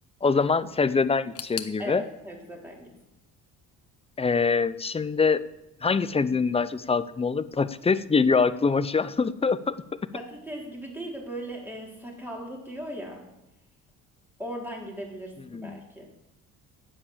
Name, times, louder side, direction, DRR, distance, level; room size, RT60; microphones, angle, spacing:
voice 1, 0.2-2.0 4.2-5.4 5.8-9.7 15.5-15.8, left 4 dB, 20° left, 15 dB, 0.6 m, -24 dB
sound 1, 1.3-4.2 4.5-5.3 5.6-5.7 6.5-6.6, left 9 dB, 50° left, 1.1 m, -44 dB
voice 2, 1.8-2.9 10.1-13.2 14.4-16.1, equal, 5° right, -1 dB, 3.9 m, -38 dB
9.9 x 8.9 x 7.4 m, 0.91 s
cardioid pair, 95°, 33 cm